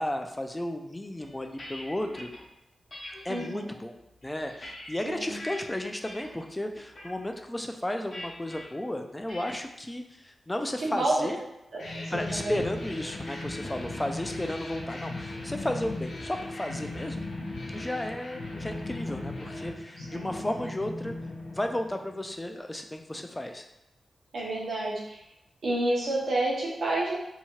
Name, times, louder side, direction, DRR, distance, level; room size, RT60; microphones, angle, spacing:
voice 1, 0.0-2.3 3.2-3.9 4.2-11.4 12.1-17.2 17.7-21.1 21.5-23.7, left 1 dB, 15° left, 5 dB, 0.3 m, -33 dB
sound 1, 1.2-2.4 2.9-3.4 4.1-5.6 6.0-6.4 6.8-7.1 8.1-8.7 9.3-9.7, left 1 dB, 45° left, 0.8 m, -43 dB
voice 2, 3.3-3.7 5.0-5.4 10.8-11.1 12.1-12.6 20.1-20.5 24.3-25.2 25.6-27.2, right 2 dB, 75° right, -4 dB, 0.8 m, -29 dB
sound 2, 11.8-22.3, left 2 dB, 85° left, 0.5 m, -37 dB
2.8 x 2.3 x 2.9 m, 0.90 s
cardioid pair, 80°, 0 cm